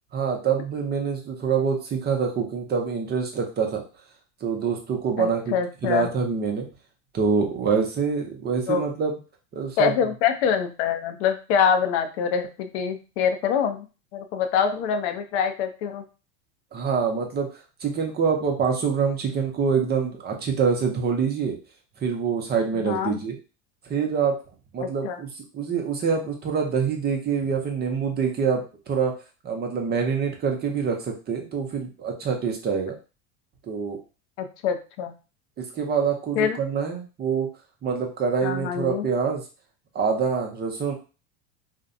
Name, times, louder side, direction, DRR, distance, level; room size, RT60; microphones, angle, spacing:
voice 1, 0.1-3.8 4.4-5.5 5.8-6.7 7.1-9.2 9.5-9.9 16.7-17.5 17.8-21.5 22.0-23.3 23.9-24.4 24.7-25.3 25.5-29.1 29.4-33.0 33.6-34.0 35.6-37.5 37.8-39.4 39.9-40.9, right 6 dB, 25° right, 2 dB, 0.6 m, -25 dB
voice 2, 5.2-6.1 8.7-8.8 9.8-13.9 14.1-16.0 22.7-23.2 24.8-25.2 34.4-35.1 36.4-36.6 38.4-39.1, left 7 dB, 70° left, 7 dB, 0.6 m, -25 dB
2.5 x 2.1 x 2.5 m, 0.32 s
supercardioid pair, 105°, 36 cm